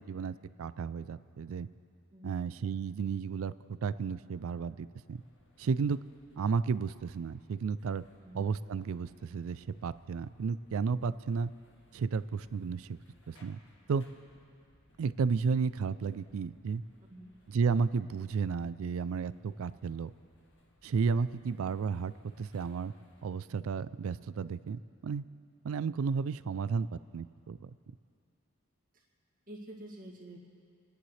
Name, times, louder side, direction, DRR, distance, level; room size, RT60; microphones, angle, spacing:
voice 1, 0.0-1.7 2.2-5.2 5.6-6.0 6.4-8.0 8.3-11.5 11.9-13.0 13.3-13.6 13.9-14.0 15.0-16.8 17.5-20.1 20.8-22.9 23.2-25.2 25.6-26.9 27.1-27.7, right 5 dB, 65° right, 16 dB, 0.3 m, -33 dB
voice 2, 2.1-2.4 8.2-8.4 17.1-17.3 28.9-29.0 29.5-30.4, right 1 dB, 40° right, -3 dB, 2.1 m, -48 dB
sound 1, 5.1-23.3, left 1 dB, 55° left, 1.9 m, -66 dB
29.5 x 10.5 x 3.3 m, 2.4 s
head